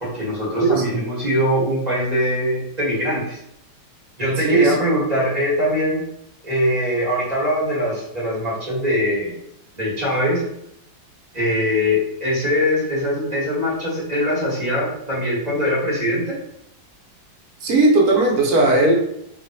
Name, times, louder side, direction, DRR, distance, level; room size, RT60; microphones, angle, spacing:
voice 1, 0.0-3.4 4.2-6.0 6.4-9.3 9.7-10.4 11.3-16.4, equal, 30° right, -8 dB, 0.9 m, -22 dB
voice 2, 0.6-1.0 4.4-4.7 17.6-18.9, right 2 dB, 65° right, -1 dB, 1.0 m, -16 dB
2.9 x 2.5 x 2.7 m, 0.79 s
omnidirectional pair, 2.0 m